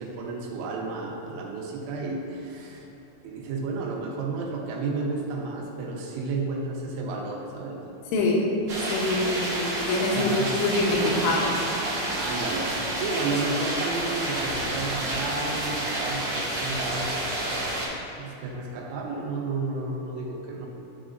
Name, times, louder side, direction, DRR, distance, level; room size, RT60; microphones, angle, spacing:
voice 1, 0.0-2.9 3.2-7.8 9.9-10.5 12.2-12.7 13.0-17.6 18.1-20.7, right 3 dB, 90° right, -1 dB, 3.6 m, -32 dB
sound 1, 8.7-17.9, right 1 dB, 65° right, 1.7 m, -29 dB
voice 2, 8.9-10.3 10.6-11.5, left 2 dB, 80° left, -2 dB, 3.3 m, -25 dB
12.5 x 4.8 x 2.6 m, 3.0 s
omnidirectional pair, 5.8 m